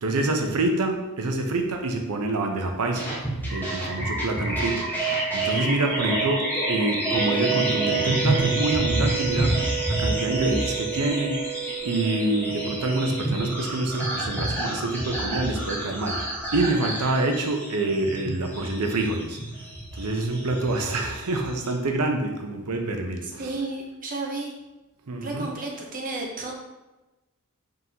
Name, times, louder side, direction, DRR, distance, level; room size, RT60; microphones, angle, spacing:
voice 1, 0.0-3.1 3.5-11.4 11.8-19.4 20.0-23.5 25.1-25.5, right 2 dB, 90° right, 3 dB, 0.7 m, -26 dB
sound 1, 2.9-21.7, right 2 dB, 10° left, 0.8 m, -28 dB
sound 2, 7.1-15.2, right 8 dB, 85° left, 0.9 m, -33 dB
voice 2, 23.2-24.6 25.2-26.5, right 2 dB, 40° right, 0 dB, 0.8 m, -32 dB
3.9 x 3.8 x 2.8 m, 1.1 s
head